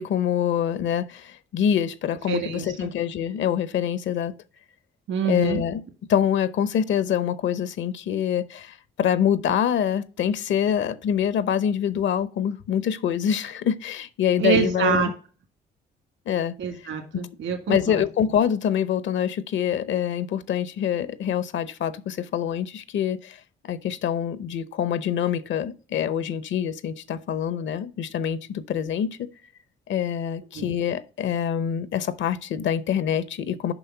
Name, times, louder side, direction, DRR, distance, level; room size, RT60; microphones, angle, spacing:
voice 1, 0.0-4.3 5.2-5.8 6.1-15.1 16.3-16.5 17.7-23.4 23.6-29.3 29.9-33.7, left 9 dB, 70° left, 0.7 m, -25 dB
voice 2, 2.3-2.9 5.1-5.6 14.4-15.1 16.6-18.0 30.5-30.7, right 7 dB, 70° right, 1.8 m, -26 dB
6.9 x 5.5 x 5.9 m
cardioid pair, 90°, 20 cm